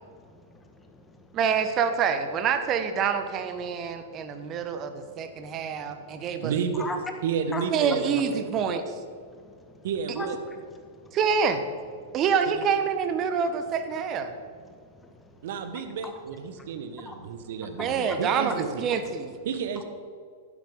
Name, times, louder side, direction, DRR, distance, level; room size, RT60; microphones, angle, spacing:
voice 1, 0.1-1.4 3.8-6.4 6.8-7.0 7.5-7.7 9.2-9.9 10.2-10.3 10.8-11.2 14.6-15.5 16.0-16.1 16.5-17.5 17.8-18.2, left 3 dB, 15° left, 1.4 m, -43 dB
voice 2, 1.3-6.5 7.7-8.8 11.1-11.6 12.1-14.3 17.8-19.3, right 6 dB, 35° right, 1.0 m, -26 dB
voice 3, 6.4-6.9 7.2-8.6 9.8-10.4 12.6-12.7 15.4-18.8 19.4-19.8, right 6 dB, 60° right, 1.1 m, -31 dB
11.5 x 10.0 x 3.7 m
hypercardioid pair, 105°, 0 cm